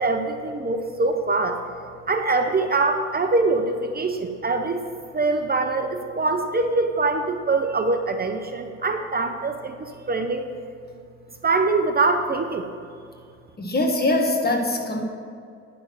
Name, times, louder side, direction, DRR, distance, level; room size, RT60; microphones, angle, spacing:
voice 1, 0.0-1.6 2.1-4.8 5.1-9.8 10.1-10.5 11.4-12.7, right 3 dB, 30° right, 6 dB, 0.7 m, -23 dB
voice 2, 13.6-15.0, left 2 dB, 30° left, 2 dB, 1.7 m, -22 dB
10.5 x 6.3 x 6.0 m, 2.4 s
cardioid pair, 90°, 30 cm